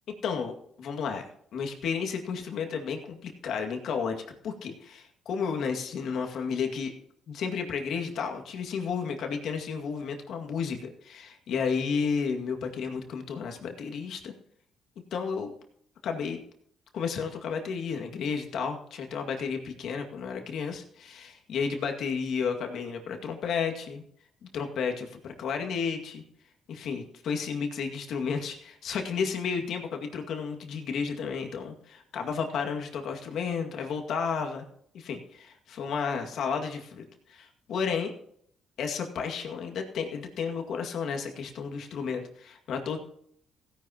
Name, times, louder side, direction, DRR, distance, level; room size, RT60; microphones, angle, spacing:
voice 1, 0.2-1.2 1.5-6.9 7.3-14.3 15.1-15.5 16.0-16.4 16.9-24.0 24.4-26.2 26.7-34.6 34.9-38.1 38.8-43.0, left 6 dB, 70° left, 3 dB, 2.1 m, -32 dB
16.5 x 10.5 x 3.0 m, 0.67 s
cardioid pair, 90°, 0 cm